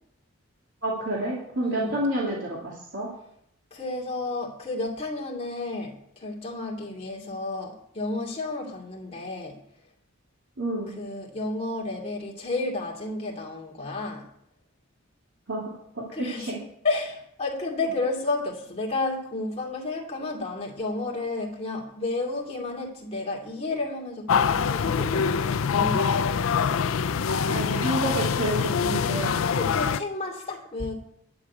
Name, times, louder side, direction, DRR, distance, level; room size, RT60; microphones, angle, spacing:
voice 1, 0.8-3.1 10.6-11.0 15.5-15.6 16.0-16.1 16.5-16.6 27.5-29.5, right 1 dB, 65° right, -4 dB, 2.6 m, -29 dB
voice 2, 1.6-2.0 3.7-9.6 10.9-14.3 16.1-26.5 29.5-30.9, left 2 dB, 30° left, 0 dB, 2.5 m, -32 dB
sound 1, 24.3-30.0, left 6 dB, 80° left, 0.5 m, -24 dB
11.5 x 6.2 x 8.4 m, 0.70 s
head